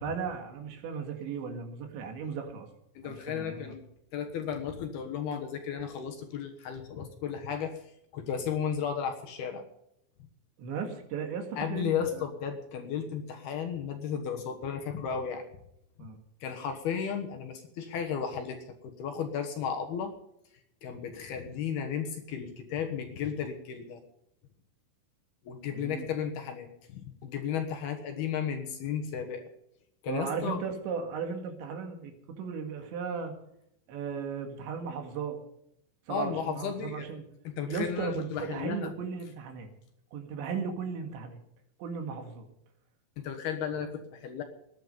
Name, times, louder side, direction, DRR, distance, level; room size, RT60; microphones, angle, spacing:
voice 1, 0.0-2.7 3.0-3.8 10.6-12.2 16.0-16.2 25.7-26.1 30.1-33.3 33.9-35.4 36.1-37.3 37.6-39.7 40.1-41.4 41.8-42.5, right 6 dB, 70° right, 5 dB, 4.1 m, -36 dB
voice 2, 3.0-3.8 4.1-7.9 8.1-9.6 11.6-15.4 16.0-16.1 16.4-20.1 20.8-24.0 25.4-29.5 30.0-30.6 36.1-37.1 37.4-38.9 43.2-44.4, left 7 dB, 65° left, 5 dB, 2.9 m, -34 dB
18.0 x 11.0 x 5.4 m, 0.78 s
omnidirectional pair, 5.5 m